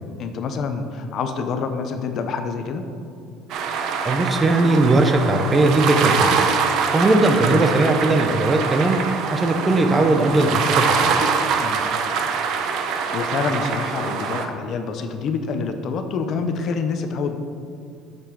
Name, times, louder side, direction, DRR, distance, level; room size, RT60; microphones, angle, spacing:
voice 1, 0.2-2.9 11.6-11.8 12.9-17.4, left 5 dB, 40° left, 7 dB, 0.7 m, -27 dB
sound 1, 3.5-14.4, right 5 dB, 55° right, 0.7 m, -24 dB
voice 2, 4.0-6.4 6.9-9.0 9.3-11.3, right 2 dB, 15° right, 6 dB, 0.6 m, -19 dB
8.7 x 6.8 x 4.6 m, 2.3 s
cardioid pair, 165°, 0 cm